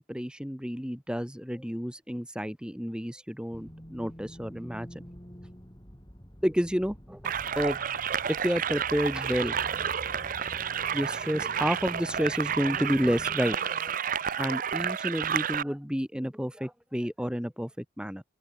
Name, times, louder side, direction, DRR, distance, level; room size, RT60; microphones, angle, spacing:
voice 1, 0.0-4.9 6.4-7.8 8.3-9.6 10.9-13.9 14.4-18.2, equal, 5° right, 1.6 m, -30 dB
sound 1, 3.5-13.4, equal, 20° left, 6.7 m, -47 dB
sound 2, 7.2-15.6, right 8 dB, 40° right, 0.5 m, -31 dB
open air
head